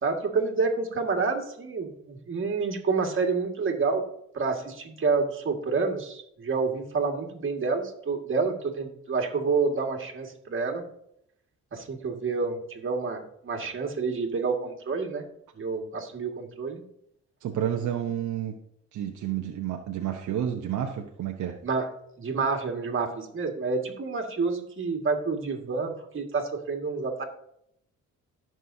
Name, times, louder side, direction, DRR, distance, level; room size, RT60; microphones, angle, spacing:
voice 1, 0.0-4.0 4.3-10.8 11.7-15.3 15.6-16.8 21.6-21.9 22.2-27.3, right 4 dB, 40° right, 3 dB, 2.1 m, -28 dB
voice 2, 17.4-18.5 18.9-21.6, right 10 dB, 75° right, 3 dB, 1.0 m, -30 dB
17.0 x 6.2 x 2.8 m, 0.73 s
cardioid pair, 90°, 30 cm